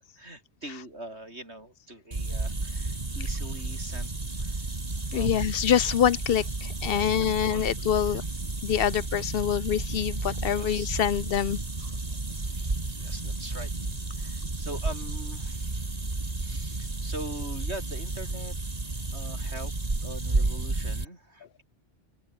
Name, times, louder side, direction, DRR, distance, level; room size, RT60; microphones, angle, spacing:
voice 1, 0.2-4.1 4.4-4.7 5.1-5.3 6.8-7.6 8.1-8.2 10.3-10.9 12.3-13.7 14.2-15.9 16.4-18.6 19.1-19.7 20.0-21.6, right 1 dB, 85° right, 7.8 m, -42 dB
sound 1, 2.1-21.0, right 2 dB, 35° right, 2.3 m, -32 dB
voice 2, 5.1-8.2 8.6-11.6, left 9 dB, 65° left, 0.8 m, -25 dB
open air
omnidirectional pair, 1.1 m